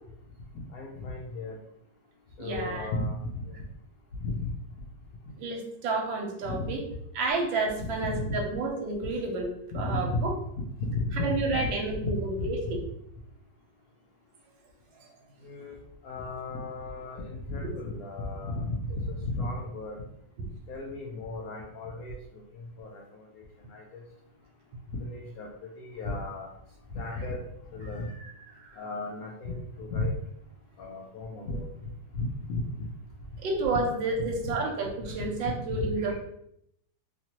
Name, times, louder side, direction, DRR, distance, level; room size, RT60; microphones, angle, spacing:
voice 1, 0.7-1.6 2.4-3.5 4.2-4.5 6.4-6.7 7.8-8.4 9.8-10.2 10.9-11.7 12.0-12.7 15.4-15.7 16.0-20.0 20.7-22.2 22.5-23.2 23.7-24.0 24.9-25.5 25.8-26.5 26.9-27.4 27.7-28.1 28.8-30.1 30.8-31.7 32.1-32.9 34.4-34.5 35.2-35.3 35.7-35.9, left 2 dB, 75° left, -2 dB, 0.8 m, -34 dB
voice 2, 2.4-2.9 5.4-6.8 7.1-10.3 11.1-12.8 17.6-17.7 28.0-28.1 28.5-28.8 33.4-36.2, right 3 dB, 85° right, 0 dB, 1.3 m, -30 dB
2.9 x 2.9 x 2.9 m, 0.74 s
omnidirectional pair, 2.1 m